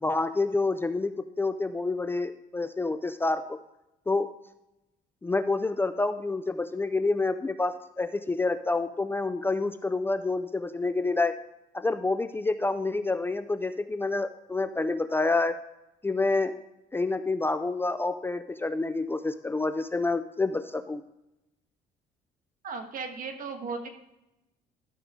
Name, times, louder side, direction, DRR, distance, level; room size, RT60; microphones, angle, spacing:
voice 1, 0.0-3.6 4.1-4.3 5.2-11.4 11.7-15.6 16.0-16.5 16.9-21.0, left 3 dB, 15° left, 10 dB, 0.4 m, -28 dB
voice 2, 22.6-23.9, right 4 dB, 55° right, 6 dB, 1.4 m, -36 dB
13.0 x 6.4 x 3.6 m, 0.91 s
cardioid pair, 110°, 17 cm